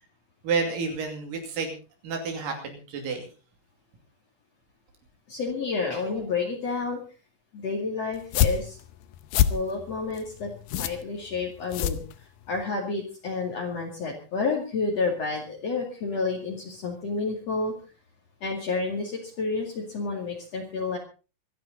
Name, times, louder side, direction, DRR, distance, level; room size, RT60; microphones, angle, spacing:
voice 1, 0.4-1.7 2.0-3.3, right 4 dB, 80° right, 3 dB, 4.3 m, -30 dB
voice 2, 5.3-7.0 7.5-8.8 9.5-10.5 10.8-12.0 12.5-17.7 18.4-21.0, left 4 dB, 50° left, -1 dB, 3.4 m, -30 dB
sound 1, 8.1-12.6, left 10 dB, 90° left, 2.6 m, -27 dB
26.0 x 10.5 x 4.1 m, 0.35 s
omnidirectional pair, 3.9 m